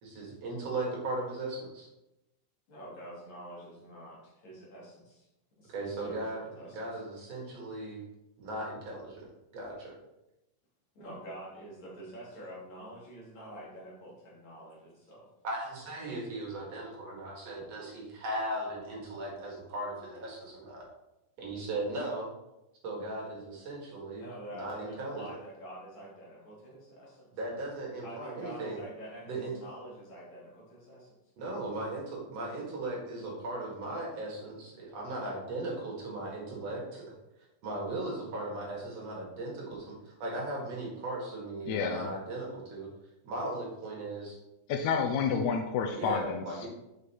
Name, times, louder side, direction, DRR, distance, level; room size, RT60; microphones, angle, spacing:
voice 1, 0.0-1.9 5.7-6.4 6.8-8.0 8.4-9.2 9.5-9.9 15.4-20.8 21.4-22.3 22.8-24.2 24.5-25.2 27.3-28.8 29.2-29.5 31.4-37.0 37.6-42.9 43.2-44.4 45.9-46.7, right 2 dB, 55° right, -3 dB, 2.6 m, -37 dB
voice 2, 2.7-5.3 5.6-7.0 10.9-15.3 24.1-27.3 28.0-31.2, right 1 dB, 55° left, -5 dB, 3.4 m, -47 dB
voice 3, 41.7-42.1 44.7-46.4, left 6 dB, 80° left, 4 dB, 1.7 m, -29 dB
6.4 x 5.2 x 4.2 m, 0.92 s
omnidirectional pair, 3.8 m